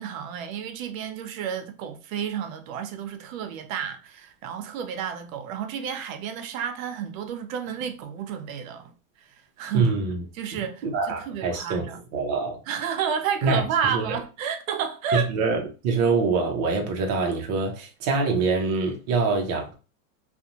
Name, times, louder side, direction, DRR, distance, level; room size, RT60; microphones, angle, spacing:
voice 1, 0.0-8.9 9.6-9.9 10.3-12.0 12.7-15.3, right 7 dB, 85° right, 0.6 m, -31 dB
voice 2, 9.7-10.2 10.5-12.6 13.4-13.6 13.9-14.1 15.1-19.7, right 4 dB, 35° right, 0.4 m, -25 dB
2.5 x 2.0 x 2.7 m
supercardioid pair, 180°, 40 cm